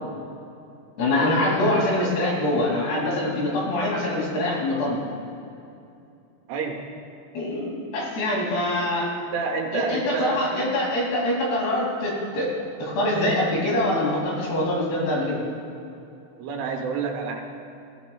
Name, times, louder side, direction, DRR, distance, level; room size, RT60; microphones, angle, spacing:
voice 1, 1.0-5.0 7.3-9.1 9.7-12.5 12.8-15.4, left 1 dB, 60° left, -3 dB, 4.4 m, -24 dB
voice 2, 6.5-6.9 9.3-10.8 16.4-17.4, right 5 dB, 80° right, 2 dB, 3.6 m, -29 dB
20.0 x 15.5 x 2.3 m, 2.6 s
omnidirectional pair, 5.5 m